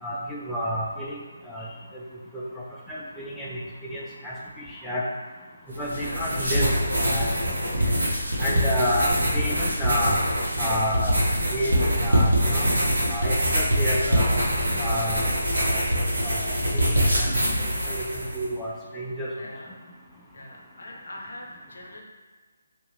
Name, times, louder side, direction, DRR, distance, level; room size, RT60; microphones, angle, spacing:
voice 1, 0.0-1.7 2.3-5.0 5.8-6.7 7.0-7.5 7.8-7.9 8.4-10.2 10.6-11.1 11.5-12.7 13.1-14.4 14.8-15.3 15.5-15.8 16.2-17.3 17.9-19.3, equal, 5° left, -7 dB, 0.3 m, -30 dB
sound 1, 5.7-18.4, equal, 80° right, 0.9 m, -24 dB
voice 2, 5.9-6.3 8.7-9.0 19.4-19.8 20.3-22.0, left 1 dB, 65° left, -2 dB, 0.6 m, -42 dB
2.8 x 2.2 x 3.0 m, 1.4 s
figure-of-eight pair, 150°, 0 cm